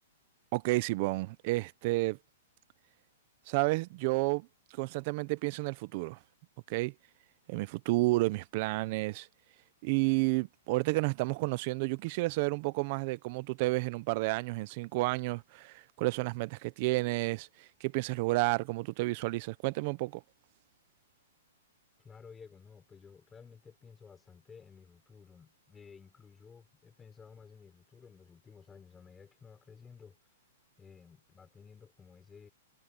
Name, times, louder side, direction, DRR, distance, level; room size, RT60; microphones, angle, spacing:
voice 1, 0.5-2.2 3.5-4.5 4.7-6.2 6.7-6.9 7.5-9.3 9.8-20.2, right 22 dB, 40° right, 0.7 m, -31 dB
voice 2, 22.0-30.2 30.8-32.5, left 6 dB, 10° left, 5.6 m, -54 dB
hypercardioid pair, 160°, 0 cm